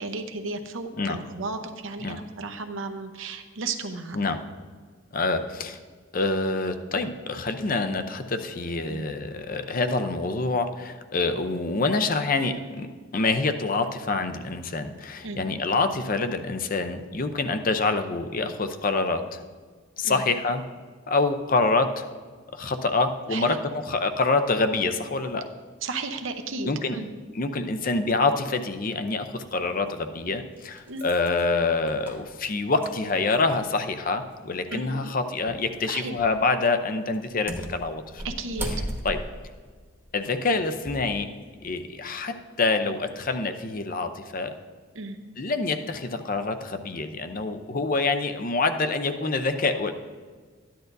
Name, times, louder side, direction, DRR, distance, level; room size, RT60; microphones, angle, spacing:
voice 1, 0.0-4.2 8.9-9.1 15.2-15.4 20.0-20.2 23.3-23.6 25.8-27.1 30.9-31.0 34.7-35.0 35.8-36.2 38.2-38.7 44.9-45.2, right 3 dB, 70° right, 7 dB, 0.8 m, -34 dB
voice 2, 5.1-5.8 6.1-12.9 13.1-19.4 20.0-20.6 21.1-22.0 22.5-25.5 26.6-27.0 27.3-38.2 39.0-39.2 40.1-41.3 41.6-44.5 45.4-49.9, left 3 dB, 40° left, 8 dB, 0.6 m, -26 dB
sound 1, 29.5-29.6 30.3-33.8 34.1-34.2 35.5-35.7 36.1-36.5 37.1-41.1 41.6-41.8, right 1 dB, 10° right, 1.0 m, -37 dB
13.5 x 10.5 x 2.6 m, 1.5 s
head